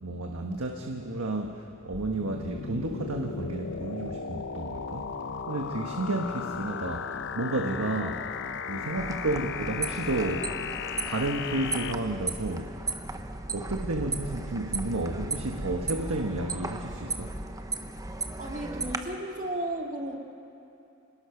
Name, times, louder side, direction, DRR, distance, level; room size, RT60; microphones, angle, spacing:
voice 1, 0.0-5.2 5.5-8.2 8.7-10.5 11.0-12.8 13.5-17.3, right 2 dB, 90° right, 2 dB, 1.4 m, -32 dB
sound 1, 1.9-11.9, left 6 dB, 60° left, 0.8 m, -36 dB
sound 2, 8.9-19.0, right 3 dB, 15° right, 1.0 m, -35 dB
voice 2, 18.4-20.2, right 1 dB, 40° right, 1 dB, 2.2 m, -34 dB
27.0 x 18.5 x 6.0 m, 2.8 s
head